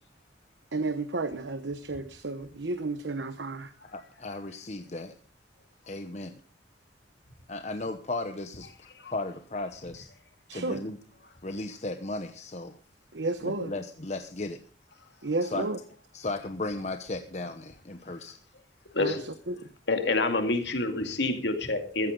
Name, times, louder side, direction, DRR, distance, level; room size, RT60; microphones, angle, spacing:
voice 1, 0.7-3.7 10.5-10.8 13.1-13.7 15.2-15.8 19.0-19.1 19.5-19.6, right 2 dB, 85° right, 1.0 m, -32 dB
voice 2, 3.9-5.1 5.9-6.3 7.5-8.7 9.1-10.1 10.5-11.0 11.4-12.8 13.4-14.6 15.4-15.7 16.1-18.4, left 2 dB, 40° left, 1.0 m, -35 dB
voice 3, 18.9-19.3 19.9-22.1, left 2 dB, 80° left, 2.2 m, -27 dB
15.0 x 14.5 x 3.9 m
head